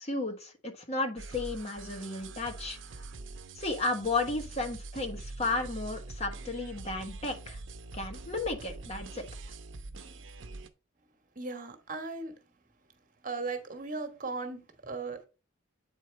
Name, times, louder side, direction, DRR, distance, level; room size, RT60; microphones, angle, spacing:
voice 1, 0.0-2.8 3.6-7.6 7.9-9.2, left 3 dB, 30° left, 1.2 m, -33 dB
sound 1, 1.2-10.7, right 3 dB, 70° right, 0.8 m, -44 dB
voice 2, 11.3-12.3 13.2-15.3, right 3 dB, 40° right, 1.3 m, -37 dB
8.3 x 4.6 x 3.2 m
head